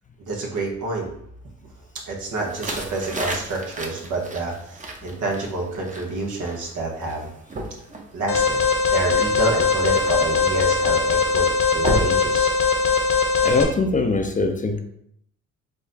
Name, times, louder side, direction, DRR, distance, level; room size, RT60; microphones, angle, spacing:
voice 1, 0.2-1.1 2.1-7.3 8.1-12.5, right 2 dB, 80° right, -1 dB, 1.3 m, -28 dB
sound 1, 2.4-13.1, right 2 dB, 25° right, 0.8 m, -34 dB
Alarm, 8.3-13.6, left 5 dB, 45° left, 0.9 m, -20 dB
voice 2, 13.4-14.8, left 3 dB, 25° left, 6 dB, 0.5 m, -22 dB
5.0 x 2.3 x 3.9 m, 0.71 s
cardioid pair, 90°, 30 cm